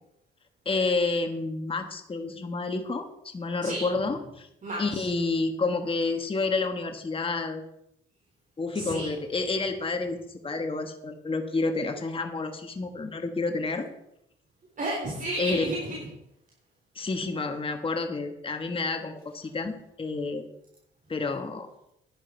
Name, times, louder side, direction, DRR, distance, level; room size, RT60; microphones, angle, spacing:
voice 1, 0.6-4.5 4.8-7.6 8.6-10.2 10.4-13.9 15.4-15.6 16.9-20.5 21.1-21.7, left 3 dB, 25° left, 6 dB, 1.3 m, -29 dB
voice 2, 4.6-5.1 8.7-9.1 14.8-16.1, right 1 dB, 40° right, -4 dB, 3.7 m, -32 dB
10.5 x 10.0 x 4.5 m, 0.79 s
cardioid pair, 90°, 20 cm